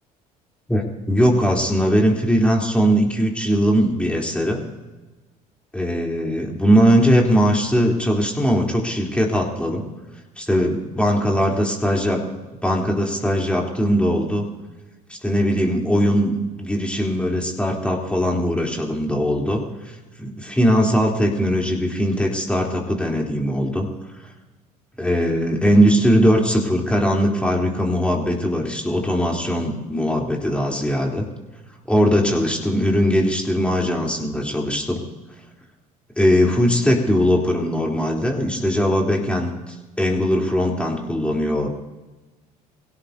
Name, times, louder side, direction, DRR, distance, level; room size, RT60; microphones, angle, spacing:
voice 1, 0.7-4.6 5.7-9.8 10.4-12.3 12.6-14.5 15.2-23.9 25.0-31.3 31.9-35.0 36.2-41.7, equal, 5° left, -1 dB, 3.4 m, -20 dB
23.0 x 17.0 x 2.8 m, 1.2 s
hypercardioid pair, 65°, 19 cm